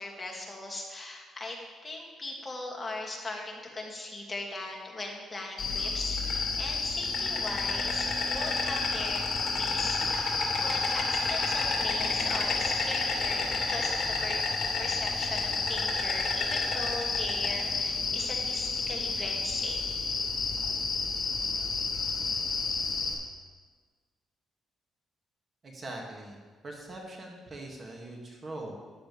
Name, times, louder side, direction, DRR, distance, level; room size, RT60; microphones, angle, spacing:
voice 1, 0.0-14.4 14.8-19.8, left 2 dB, 20° left, -2 dB, 2.3 m, -39 dB
Insect, 5.6-23.1, left 4 dB, 50° left, 2.8 m, -30 dB
voice 2, 25.6-28.7, right 2 dB, 40° right, 0 dB, 2.2 m, -42 dB
14.0 x 11.0 x 3.4 m, 1.5 s
cardioid pair, 90°, 0 cm